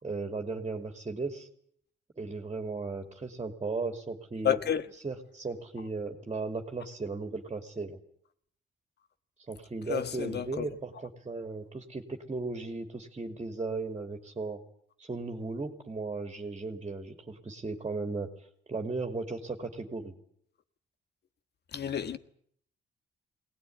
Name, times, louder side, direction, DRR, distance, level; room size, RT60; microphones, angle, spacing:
voice 1, 0.0-1.5 2.2-4.6 5.0-8.0 9.5-14.6 15.0-18.3 18.7-20.2, right 3 dB, 30° right, 2.9 m, -36 dB
voice 2, 4.4-4.8 9.9-10.6 21.7-22.2, left 9 dB, 55° left, 1.6 m, -30 dB
21.0 x 19.0 x 9.5 m
cardioid pair, 90°, 20 cm